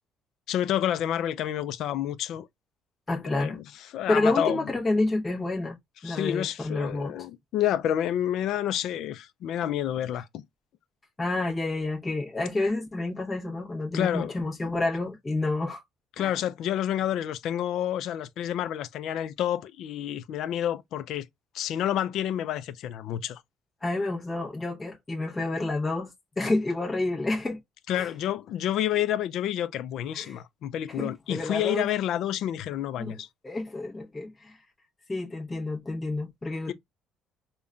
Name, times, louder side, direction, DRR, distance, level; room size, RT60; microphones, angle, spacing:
voice 1, 0.5-2.5 3.2-4.7 6.0-10.4 13.9-14.3 16.2-21.3 21.5-23.4 27.9-33.3 36.7-36.8, left 11 dB, 60° left, 0.4 m, -29 dB
voice 2, 3.1-3.6 4.1-5.8 6.0-7.1 11.2-15.8 16.2-16.3 23.8-26.1 26.4-27.6 27.9-28.1 30.1-30.4 31.0-31.8 33.0-33.2 33.4-34.6 35.1-36.7, left 2 dB, 15° left, 0.8 m, -29 dB
5.2 x 2.2 x 2.3 m
cardioid pair, 170°, 0 cm